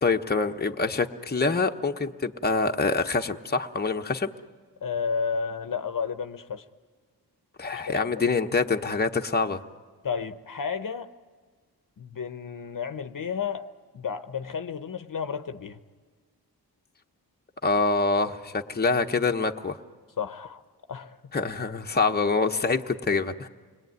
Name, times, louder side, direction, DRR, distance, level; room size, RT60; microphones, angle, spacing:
voice 1, 0.0-4.3 7.6-9.6 17.6-19.8 21.3-23.5, left 4 dB, 25° left, 4 dB, 1.0 m, -25 dB
voice 2, 4.8-6.6 7.7-8.2 10.0-11.1 12.0-13.7 13.9-15.8 20.2-20.6 20.9-21.2, left 6 dB, 55° left, 10 dB, 1.0 m, -32 dB
29.0 x 21.5 x 9.4 m, 1.5 s
wide cardioid pair, 85°, 39 cm